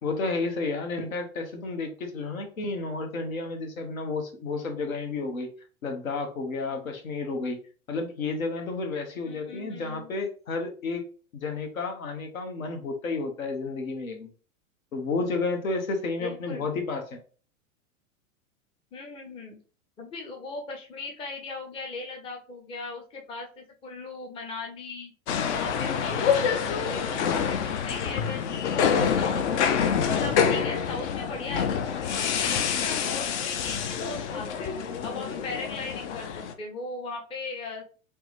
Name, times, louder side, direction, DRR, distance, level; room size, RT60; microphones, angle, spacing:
voice 1, 0.0-5.5 5.8-7.6 7.9-11.0 11.4-14.3 14.9-17.2, left 3 dB, 75° left, 3 dB, 1.0 m, -31 dB
voice 2, 9.2-10.1 16.2-16.7 18.9-19.6 20.0-25.1 25.5-29.8 30.1-34.7 35.0-38.0, left 3 dB, 15° left, 2 dB, 0.5 m, -38 dB
sound 1, 25.3-36.5, left 7 dB, 55° left, 0.6 m, -27 dB
3.4 x 2.1 x 3.0 m, 0.39 s
figure-of-eight pair, 95°, 41 cm